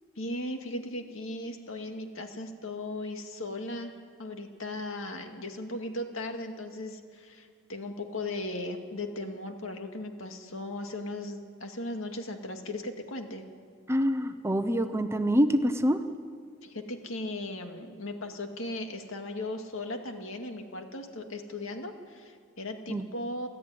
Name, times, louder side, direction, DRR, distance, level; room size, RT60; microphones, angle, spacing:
voice 1, 0.2-3.9 4.2-13.4 16.6-23.5, left 1 dB, 70° left, 4 dB, 2.2 m, -37 dB
voice 2, 13.9-16.0 22.9-23.0, equal, 15° right, 8 dB, 0.8 m, -25 dB
29.5 x 12.5 x 9.5 m, 2.1 s
head